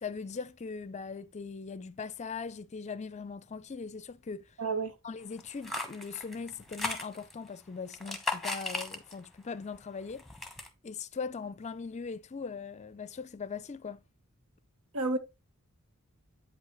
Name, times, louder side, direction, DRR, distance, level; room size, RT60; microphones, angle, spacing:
voice 1, 0.0-4.5 5.0-10.2 10.8-14.0, left 5 dB, 30° left, 0.4 m, -40 dB
voice 2, 4.6-4.9 14.9-15.2, right 3 dB, 85° right, 1.1 m, -30 dB
sound 1, 5.4-7.5 7.9-9.4 9.7-10.7, left 2 dB, ahead, 1.1 m, -37 dB
8.4 x 5.6 x 3.0 m
head